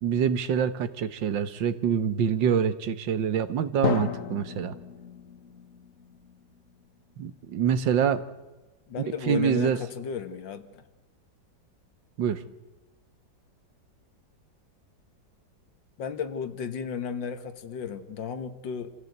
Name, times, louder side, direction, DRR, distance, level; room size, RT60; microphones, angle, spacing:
voice 1, 0.0-4.8 7.2-8.2 9.0-9.8 12.2-12.4, right 8 dB, 80° right, 12 dB, 1.8 m, -26 dB
Drum, 3.8-7.5, left 8 dB, 50° left, 1.3 m, -34 dB
voice 2, 8.9-10.9 16.0-18.9, left 7 dB, 80° left, 10 dB, 2.0 m, -34 dB
27.0 x 15.5 x 8.0 m, 1.1 s
omnidirectional pair, 2.0 m